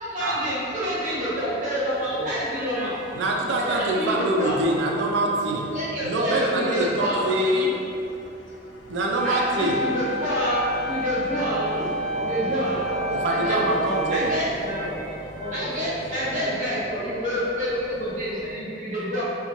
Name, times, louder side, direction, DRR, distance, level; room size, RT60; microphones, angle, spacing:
voice 1, 0.0-3.0 3.8-4.6 5.7-7.7 9.2-11.8 12.2-12.9 13.3-13.7 14.1-15.0 15.4-19.2, equal, 40° right, -9 dB, 0.8 m, -28 dB
sound 1, 0.6-18.5, equal, 80° left, 0.3 m, -44 dB
voice 2, 2.0-2.3 11.5-13.6 13.9-14.2 14.5-16.0 16.4-16.6, equal, 55° left, -8 dB, 0.7 m, -34 dB
voice 3, 3.1-5.7 6.0-7.7 8.9-9.8 13.2-14.4, right 1 dB, 80° right, -1 dB, 0.3 m, -24 dB
sound 2, 9.2-14.4, right 1 dB, 5° left, 0.5 m, -29 dB
2.8 x 2.2 x 2.6 m, 2.6 s
head